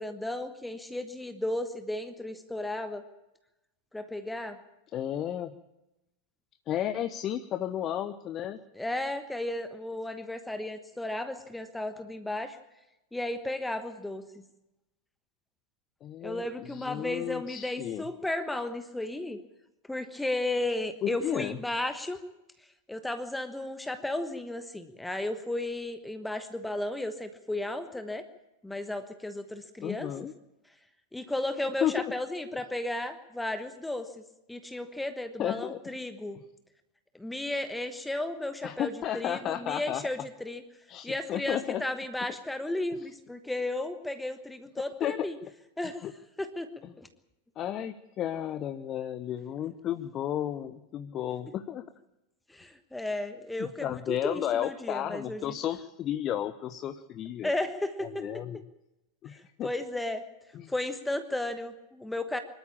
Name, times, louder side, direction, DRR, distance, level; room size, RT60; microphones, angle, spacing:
voice 1, 0.0-3.0 3.9-4.6 8.8-12.6 13.1-14.4 16.2-19.4 19.9-22.2 22.9-28.2 28.6-30.1 31.1-34.1 34.5-36.4 37.1-40.6 41.0-45.4 45.8-46.1 46.4-46.7 47.0-47.1 52.5-55.5 57.4-58.2 59.3-60.2 60.7-62.4, left 1 dB, 5° left, 9 dB, 1.2 m, -34 dB
voice 2, 4.9-5.5 6.7-8.6 16.0-18.0 21.0-21.6 29.8-30.3 31.8-32.1 35.4-35.8 36.3-36.4 38.6-40.1 40.9-41.8 45.0-45.3 46.0-46.1 46.8-46.9 47.6-51.8 53.6-57.5 58.0-58.6 59.2-59.7 60.5-60.7, left 11 dB, 30° left, 11 dB, 0.9 m, -33 dB
24.0 x 13.5 x 8.7 m, 0.94 s
figure-of-eight pair, 90°, 0 cm